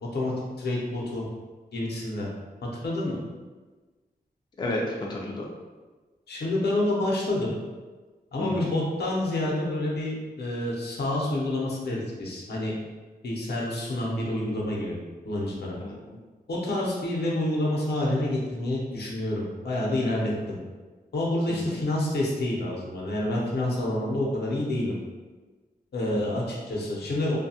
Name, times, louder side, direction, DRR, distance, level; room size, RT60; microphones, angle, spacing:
voice 1, 0.0-1.2 1.7-2.3 2.8-3.2 6.3-7.5 8.3-12.7 13.2-15.0 15.2-15.8 16.5-20.6 21.1-24.9 25.9-27.4, left 1 dB, 80° left, -4 dB, 0.7 m, -28 dB
voice 2, 4.6-5.5 8.4-8.7 15.8-16.2 21.5-21.8 26.1-26.4, left 1 dB, 25° left, -2 dB, 0.3 m, -32 dB
2.7 x 2.2 x 2.7 m, 1.3 s
wide cardioid pair, 145°, 17 cm